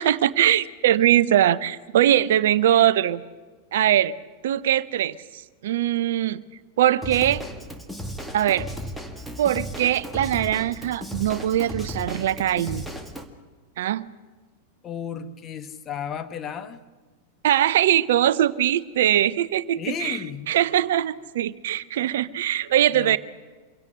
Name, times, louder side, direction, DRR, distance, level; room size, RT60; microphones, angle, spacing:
voice 1, 0.0-3.2 3.7-4.1 4.4-6.4 6.8-7.4 8.3-8.7 9.4-12.8 13.8-14.1 17.4-20.2 20.5-23.2, right 11 dB, 60° right, 18 dB, 0.6 m, -21 dB
Drum kit / Drum, 7.0-13.2, equal, ahead, 1.9 m, -35 dB
voice 2, 14.8-16.8 19.8-20.5 22.9-23.2, left 8 dB, 25° left, 9 dB, 1.4 m, -33 dB
25.0 x 17.0 x 6.4 m, 1.4 s
figure-of-eight pair, 90°, 0 cm